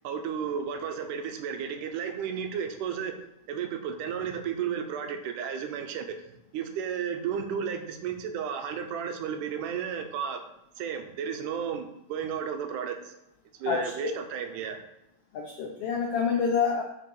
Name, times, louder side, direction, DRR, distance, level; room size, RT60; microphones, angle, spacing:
voice 1, 0.0-3.1 3.5-6.2 6.5-10.4 10.8-13.1 13.6-14.8, right 7 dB, 80° right, 6 dB, 2.4 m, -33 dB
voice 2, 15.3-16.8, left 6 dB, 75° left, 1 dB, 1.4 m, -27 dB
6.6 x 5.5 x 4.7 m, 0.89 s
omnidirectional pair, 3.6 m